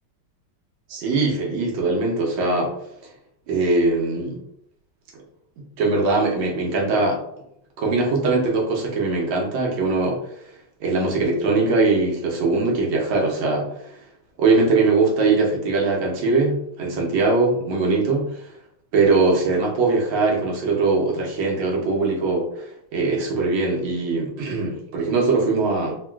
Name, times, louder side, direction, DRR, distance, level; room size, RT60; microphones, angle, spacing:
voice 1, 0.9-2.7 3.5-4.4 5.6-7.2 7.8-10.2 10.8-13.7 14.4-18.5 18.9-22.7 22.9-26.0, right 3 dB, 70° right, -1 dB, 1.4 m, -21 dB
3.6 x 2.3 x 2.2 m, 0.74 s
omnidirectional pair, 2.2 m